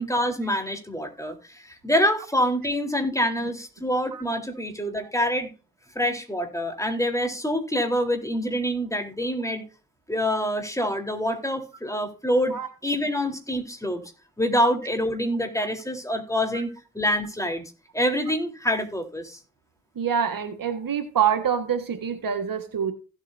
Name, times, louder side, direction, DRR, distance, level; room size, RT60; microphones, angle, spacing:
voice 1, 0.0-5.5 6.0-9.6 10.1-12.6 12.8-14.0 14.4-17.6 17.9-19.4, equal, 10° left, 3.8 m, -26 dB
voice 2, 20.0-22.9, right 8 dB, 70° right, 1.7 m, -25 dB
16.0 x 8.2 x 2.7 m
supercardioid pair, 40°, 35 cm